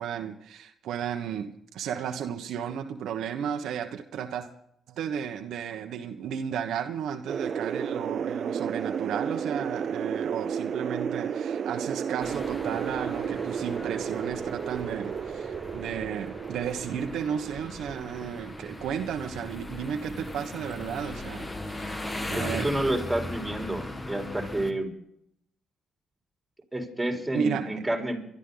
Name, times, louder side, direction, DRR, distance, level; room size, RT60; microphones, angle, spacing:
voice 1, 0.0-4.5 4.9-22.7 27.3-27.8, right 8 dB, 75° right, 5 dB, 1.2 m, -33 dB
sound 1, 7.3-19.7, right 7 dB, 55° right, 0.5 m, -33 dB
sound 2, 12.2-24.7, left 1 dB, 20° left, 1.6 m, -38 dB
voice 2, 22.4-24.9 26.7-28.2, right 1 dB, 10° right, 2 dB, 3.9 m, -29 dB
23.5 x 12.5 x 4.0 m, 0.72 s
cardioid pair, 90°, 0 cm